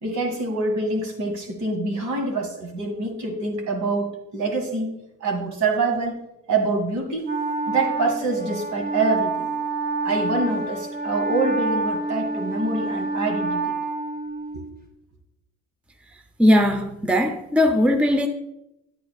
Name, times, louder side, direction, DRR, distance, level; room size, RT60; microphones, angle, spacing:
voice 1, 0.0-4.9 5.2-6.2 6.5-7.3 7.7-9.5 10.0-13.6 14.5-14.6, right 3 dB, 70° right, 2.1 m, -25 dB
Wind instrument woodwind instrument, 7.2-14.8, right 2 dB, 30° right, 1.7 m, -27 dB
voice 2, 16.4-18.3, left 1 dB, 5° right, 0.6 m, -19 dB
9.3 x 8.6 x 2.4 m
cardioid pair, 90°, 30 cm